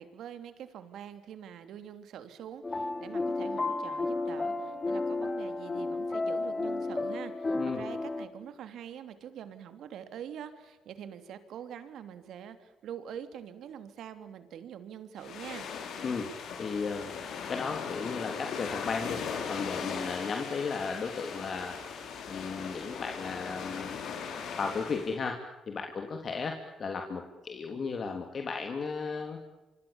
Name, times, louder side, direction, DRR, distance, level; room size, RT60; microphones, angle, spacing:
voice 1, 0.0-15.7 19.8-20.1, right 9 dB, 75° right, 10 dB, 3.1 m, -45 dB
sound 1, 2.6-8.3, left 3 dB, 25° left, 3.3 m, -32 dB
sound 2, 15.2-25.2, left 6 dB, 75° left, 6.2 m, -39 dB
voice 2, 16.6-17.1 17.5-19.2 19.5-21.8 22.3-24.1 24.6-25.4 25.7-29.4, left 5 dB, 45° left, 4 dB, 3.3 m, -35 dB
27.5 x 25.0 x 7.2 m, 1.1 s
cardioid pair, 90°, 0 cm